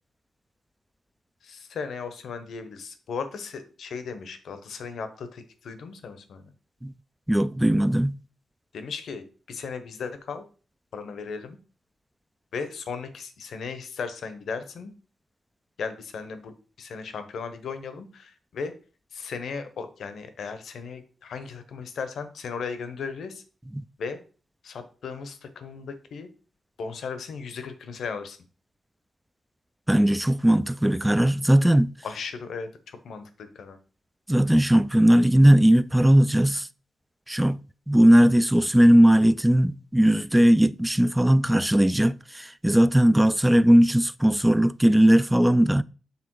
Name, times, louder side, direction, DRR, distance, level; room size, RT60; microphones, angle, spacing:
voice 1, 1.4-6.4 8.7-10.4 10.9-11.6 12.5-14.9 15.8-16.5 16.8-18.7 19.1-23.4 24.0-24.2 24.6-26.3 26.8-28.4 32.0-33.8, left 5 dB, 75° left, 0.9 m, -36 dB
voice 2, 7.3-8.2 23.7-23.8 29.9-31.9 34.3-36.7 37.3-37.6 37.9-45.8, right 1 dB, 10° right, 0.3 m, -19 dB
6.8 x 3.5 x 4.6 m
cardioid pair, 85°, 0 cm